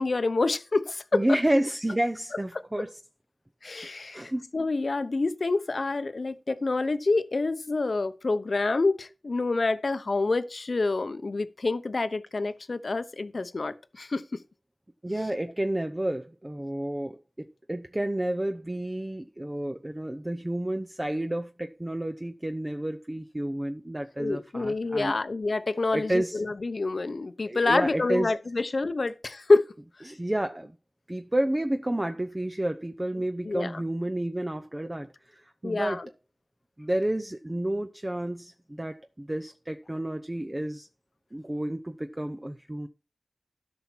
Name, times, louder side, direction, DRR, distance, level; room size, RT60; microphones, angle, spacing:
voice 1, 0.0-1.4 3.6-14.2 15.1-15.3 24.2-29.7 33.4-33.8 35.6-36.1, left 3 dB, 65° left, 0.7 m, -27 dB
voice 2, 1.1-2.9 4.1-4.5 15.0-25.2 25.9-26.4 27.4-28.3 30.0-30.7 31.1-36.0 36.8-40.9 41.3-42.9, right 1 dB, 25° right, 0.7 m, -30 dB
13.0 x 5.7 x 4.5 m
wide cardioid pair, 55°, 0 cm